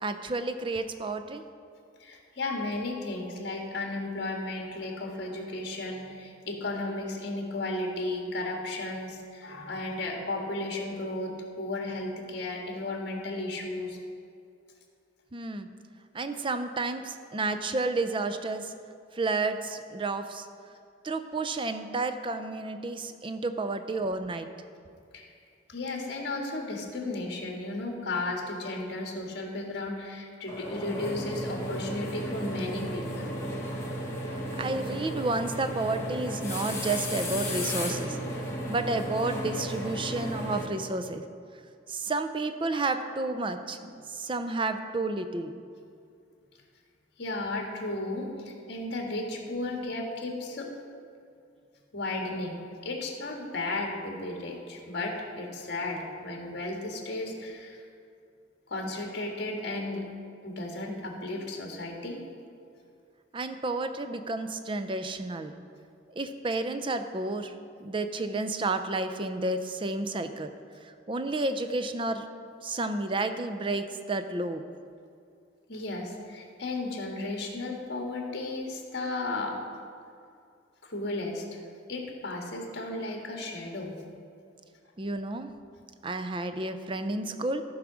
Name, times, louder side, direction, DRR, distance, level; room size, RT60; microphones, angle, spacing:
voice 1, 0.0-1.4 15.3-15.7 16.1-18.7 19.2-20.5 21.0-24.5 34.3-38.2 38.7-41.2 41.9-45.6 63.3-65.5 66.2-67.5 67.8-70.5 71.1-72.2 72.6-74.6 85.0-85.5 86.0-87.6, right 2 dB, 25° right, 9 dB, 0.5 m, -31 dB
voice 2, 2.0-14.0 25.1-25.3 25.7-33.3 47.2-50.7 51.9-57.8 58.7-60.0 60.4-62.2 75.7-79.6 80.8-81.6 81.9-83.9, left 2 dB, 55° left, 1 dB, 1.7 m, -34 dB
sound 1, 30.5-40.7, equal, 15° left, 1.5 m, -34 dB
14.5 x 4.8 x 6.1 m, 2.4 s
head